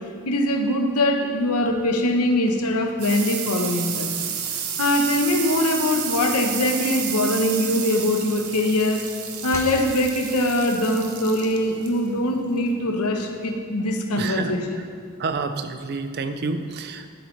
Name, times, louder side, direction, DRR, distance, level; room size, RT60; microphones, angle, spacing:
voice 1, 0.3-4.1 4.8-9.0 9.4-14.8, left 1 dB, 85° left, 4 dB, 0.9 m, -22 dB
sound 1, 2.3-13.6, right 8 dB, 75° right, 0.8 m, -32 dB
sound 2, 6.2-8.2 8.6-10.4, left 1 dB, 10° left, 0.7 m, -43 dB
voice 2, 14.2-14.8 15.2-17.1, right 4 dB, 45° right, 8 dB, 0.5 m, -29 dB
10.5 x 8.3 x 3.2 m, 2.1 s
head